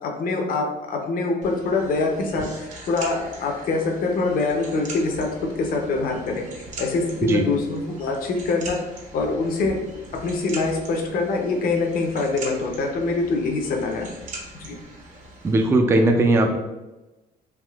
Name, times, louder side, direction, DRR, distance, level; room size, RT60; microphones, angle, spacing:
voice 1, 0.0-5.3 5.6-8.8 9.1-9.8 10.2-14.1 14.6-14.8, left 3 dB, 55° left, 2 dB, 0.6 m, -24 dB
sound 1, 1.4-15.7, right 2 dB, 50° right, 0.8 m, -41 dB
voice 2, 15.4-16.6, right 2 dB, 15° right, 4 dB, 0.3 m, -18 dB
3.5 x 2.5 x 2.3 m, 1.0 s
cardioid pair, 110°, 17 cm